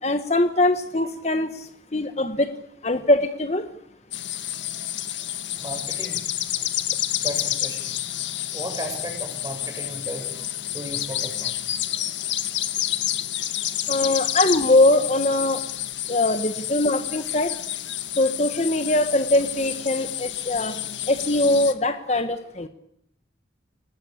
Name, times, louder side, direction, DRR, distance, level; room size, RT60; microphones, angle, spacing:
voice 1, 0.0-2.5 2.8-3.7 13.9-15.7 16.1-17.6 18.1-20.8 21.1-22.7, left 2 dB, 35° left, 9 dB, 1.2 m, -22 dB
sound 1, 4.1-21.7, left 12 dB, 75° left, 1.6 m, -29 dB
voice 2, 5.6-6.2 7.2-7.9 8.5-10.3 10.6-11.7, right 1 dB, 20° right, 4 dB, 6.5 m, -35 dB
29.0 x 18.0 x 8.6 m, 0.77 s
head